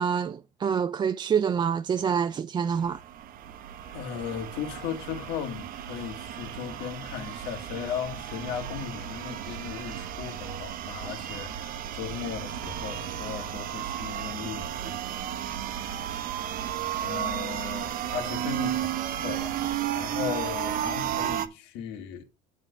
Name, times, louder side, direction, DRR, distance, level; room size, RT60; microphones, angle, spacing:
voice 1, 0.0-3.0, right 7 dB, 25° right, 0.3 m, -26 dB
sound 1, 2.7-21.5, right 10 dB, 50° right, 0.9 m, -33 dB
voice 2, 3.8-15.4 17.0-19.5 19.9-22.2, left 8 dB, 70° left, 1.6 m, -37 dB
7.9 x 3.7 x 6.6 m
supercardioid pair, 105°, 18 cm